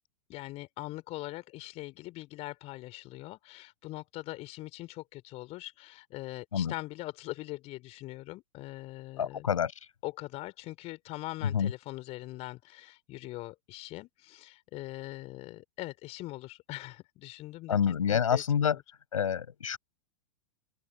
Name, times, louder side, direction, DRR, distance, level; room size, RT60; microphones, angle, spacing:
voice 1, 0.3-9.5 10.0-17.8 18.1-18.8, left 19 dB, 35° left, 4.6 m, -42 dB
voice 2, 9.2-9.7 11.5-11.7 17.7-18.8 19.1-19.8, left 8 dB, 70° left, 7.5 m, -27 dB
open air
figure-of-eight pair, 95°, 18 cm